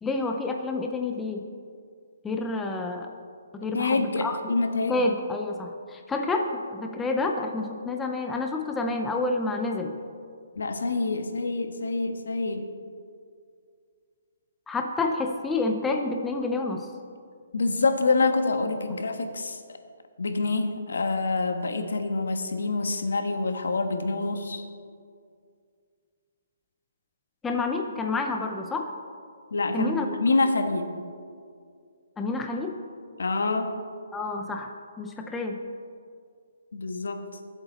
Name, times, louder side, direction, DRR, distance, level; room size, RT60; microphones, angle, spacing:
voice 1, 0.0-1.4 2.2-3.1 3.5-4.4 4.9-9.9 14.7-16.9 27.4-28.9 29.7-30.1 32.2-32.7 34.1-35.6, left 3 dB, 5° left, 3 dB, 0.5 m, -29 dB
voice 2, 3.7-5.0 10.6-12.7 17.5-19.6 20.2-24.7 29.5-30.9 33.2-33.7 36.7-37.3, left 3 dB, 85° left, 6 dB, 1.4 m, -26 dB
21.5 x 8.1 x 4.1 m, 2.2 s
hypercardioid pair, 175°, 0 cm